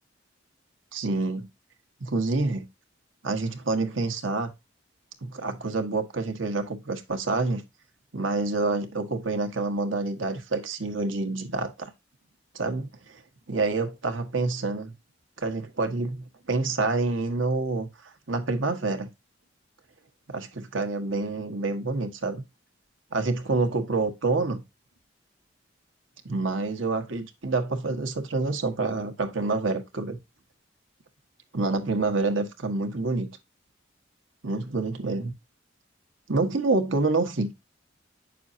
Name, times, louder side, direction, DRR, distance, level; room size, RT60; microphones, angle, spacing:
voice 1, 0.9-1.5 2.0-2.6 3.2-4.5 5.2-7.6 8.1-11.9 12.5-12.9 13.5-14.9 15.4-17.9 18.3-19.1 20.3-22.4 23.1-24.6 26.2-30.2 31.5-33.3 34.4-35.3 36.3-37.5, right 3 dB, 90° right, 1.6 m, -27 dB
8.9 x 6.6 x 2.7 m
head